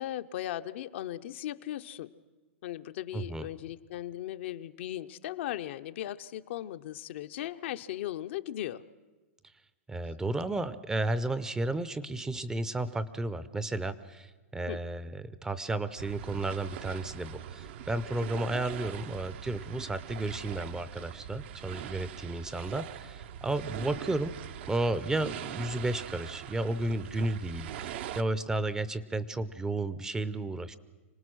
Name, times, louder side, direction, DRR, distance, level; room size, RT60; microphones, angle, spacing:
voice 1, 0.0-2.1 2.6-8.8 14.7-14.8, left 13 dB, 60° left, 9 dB, 0.7 m, -37 dB
voice 2, 3.1-3.5 9.9-24.3 24.7-30.8, right 2 dB, 10° right, 15 dB, 0.6 m, -33 dB
sound 1, 16.0-28.2, right 10 dB, 60° right, 0.8 m, -42 dB
25.5 x 18.5 x 6.2 m, 1.3 s
hypercardioid pair, 140°, 7 cm